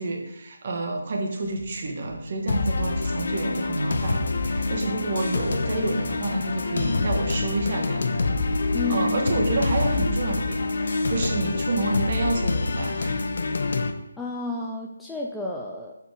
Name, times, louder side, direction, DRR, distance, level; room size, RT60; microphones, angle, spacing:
voice 1, 0.0-8.3 8.6-13.2, right 2 dB, 40° right, 2 dB, 1.5 m, -29 dB
sound 1, 1.4-13.4, equal, 75° right, 1.2 m, -45 dB
sound 2, 2.5-13.9, left 3 dB, 50° left, 0.8 m, -26 dB
voice 2, 8.7-9.3 14.2-16.0, left 3 dB, 5° left, -2 dB, 0.6 m, -31 dB
6.9 x 5.4 x 4.8 m, 0.85 s
figure-of-eight pair, 150°, 0 cm